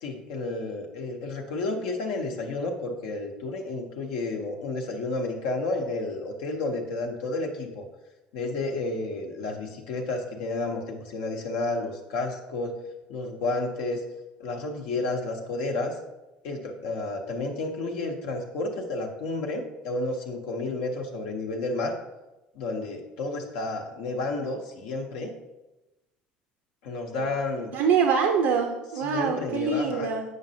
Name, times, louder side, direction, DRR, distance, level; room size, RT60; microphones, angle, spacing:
voice 1, 0.0-7.8 8.3-12.7 13.1-14.0 14.4-16.0 16.4-21.9 22.5-25.3 26.8-27.7 29.0-30.1, left 2 dB, 80° left, 2 dB, 0.8 m, -31 dB
voice 2, 27.7-30.2, right 6 dB, 80° right, 3 dB, 0.6 m, -24 dB
8.0 x 5.2 x 2.7 m, 1.0 s
hypercardioid pair, 75°, 4 cm